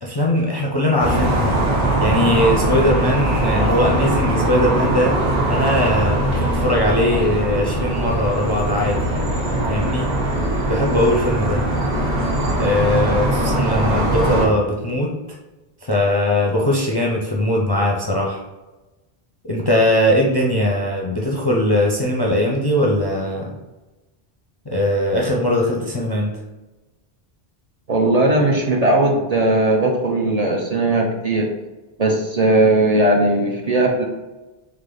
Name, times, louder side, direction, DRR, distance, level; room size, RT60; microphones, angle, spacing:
voice 1, 0.0-1.6 2.0-5.2 5.5-9.0 9.7-10.1 10.7-11.6 12.6-15.1 15.8-18.4 19.4-23.5 24.7-26.3, left 1 dB, 35° left, -2 dB, 0.4 m, -20 dB
sound 1, 1.0-14.5, right 1 dB, 70° right, 1.2 m, -21 dB
voice 2, 27.9-31.5 32.0-34.0, right 2 dB, 45° right, -1 dB, 0.6 m, -18 dB
3.6 x 3.4 x 3.8 m, 1.1 s
omnidirectional pair, 1.0 m